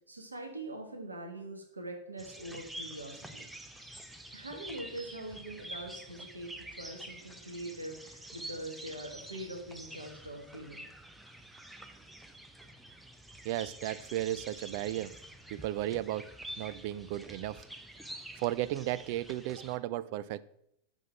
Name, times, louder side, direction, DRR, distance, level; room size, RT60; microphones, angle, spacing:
voice 1, 0.1-3.4 4.3-10.8, right 1 dB, 80° right, 1 dB, 1.4 m, -43 dB
sound 1, 2.2-19.8, right 1 dB, 5° right, 0.7 m, -48 dB
voice 2, 13.4-15.2 15.5-17.6 18.4-20.4, right 14 dB, 45° right, 15 dB, 0.3 m, -35 dB
5.6 x 5.3 x 5.7 m, 0.74 s
figure-of-eight pair, 90°, 0 cm